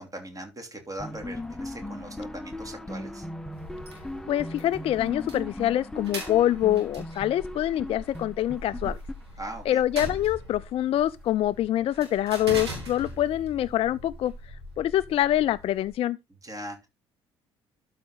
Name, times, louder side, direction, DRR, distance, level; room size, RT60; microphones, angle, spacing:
voice 1, 0.0-3.3 9.4-9.8 16.4-16.9, right 1 dB, 25° right, 2.9 m, -40 dB
sound 1, 1.0-9.8, left 1 dB, 5° left, 0.8 m, -38 dB
sound 2, 3.5-15.9, right 1 dB, 85° right, 2.0 m, -41 dB
voice 2, 4.3-9.0 9.7-14.3 14.8-16.2, left 12 dB, 45° left, 0.4 m, -25 dB
12.0 x 4.1 x 3.8 m
figure-of-eight pair, 50°, 14 cm